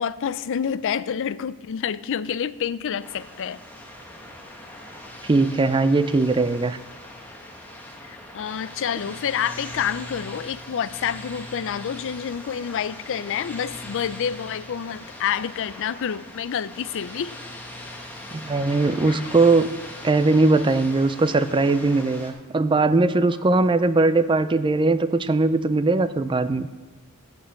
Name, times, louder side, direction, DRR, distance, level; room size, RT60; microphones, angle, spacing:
voice 1, 0.0-3.6 8.0-17.3 19.1-19.2, left 8 dB, 60° left, 16 dB, 0.4 m, -28 dB
sound 1, 3.0-22.3, left 1 dB, 10° left, 1.3 m, -40 dB
voice 2, 5.2-6.8 18.3-19.7 20.0-26.7, right 3 dB, 25° right, 13 dB, 0.4 m, -20 dB
8.8 x 7.0 x 7.0 m, 1.2 s
head